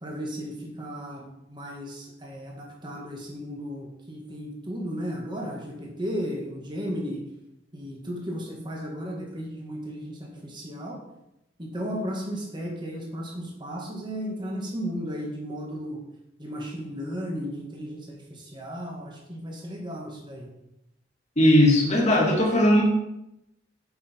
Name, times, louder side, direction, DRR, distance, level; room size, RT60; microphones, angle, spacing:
voice 1, 0.0-7.2 7.7-11.0 11.6-16.0 16.4-20.5, equal, 25° right, -1 dB, 1.9 m, -35 dB
voice 2, 21.4-22.8, left 1 dB, 35° left, -2 dB, 2.2 m, -18 dB
8.6 x 6.5 x 4.6 m, 0.87 s
head